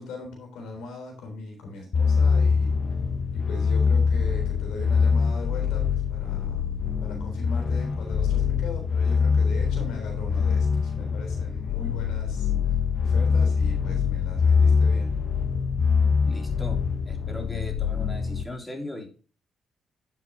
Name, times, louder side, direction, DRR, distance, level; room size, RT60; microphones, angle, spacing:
voice 1, 0.0-2.7 3.3-6.7 7.0-15.2, left 2 dB, 90° left, 3 dB, 3.7 m, -40 dB
sound 1, 1.9-18.4, left 5 dB, 45° left, 1.0 m, -24 dB
voice 2, 16.2-16.8 17.1-19.1, left 1 dB, 10° left, 2 dB, 3.0 m, -38 dB
11.0 x 7.4 x 2.8 m, 0.36 s
cardioid pair, 90°, 0 cm